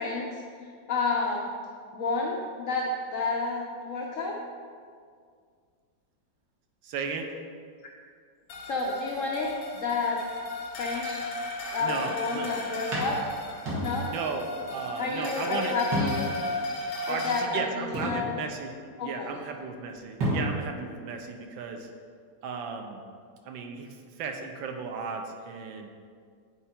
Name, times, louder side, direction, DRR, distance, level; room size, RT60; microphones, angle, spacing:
voice 1, 0.0-1.5 1.9-4.4 8.7-10.2 10.8-11.2 11.7-13.2 13.8-14.1 15.0-16.3 17.1-18.3 19.0-19.3, left 3 dB, 65° left, -1 dB, 0.8 m, -30 dB
voice 2, 6.8-7.3 11.8-12.6 14.0-16.1 17.1-21.9 22.4-23.0 23.4-25.9, right 5 dB, 90° right, 4 dB, 1.5 m, -35 dB
sound 1, 8.5-17.5, left 2 dB, 90° left, 1.6 m, -35 dB
sound 2, 12.2-12.4 12.9-14.3 14.6-14.7 15.9-16.4 16.9-17.0 17.9-18.7 19.9-20.0 20.2-20.8, right 1 dB, 65° right, 2.4 m, -31 dB
7.9 x 4.7 x 4.3 m, 2.1 s
omnidirectional pair, 2.1 m